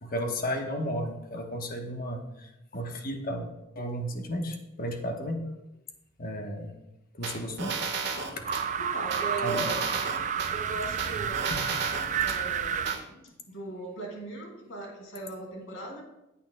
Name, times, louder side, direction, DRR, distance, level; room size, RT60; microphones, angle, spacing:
voice 1, 0.0-3.5 3.8-5.4 6.2-6.7 7.1-7.7 8.1-8.4 9.4-9.7 11.5-11.6, equal, 45° left, 3 dB, 1.0 m, -34 dB
sound 1, 7.2-8.7 9.1-10.5 11.0-12.4 12.9-13.0, right 5 dB, 55° right, 1.4 m, -33 dB
sound 2, 8.4-13.0, right 8 dB, 35° right, 0.3 m, -30 dB
voice 2, 8.8-10.2 10.5-11.5 12.2-16.0, right 2 dB, 70° left, -1 dB, 2.7 m, -38 dB
15.5 x 8.5 x 2.2 m, 0.90 s
head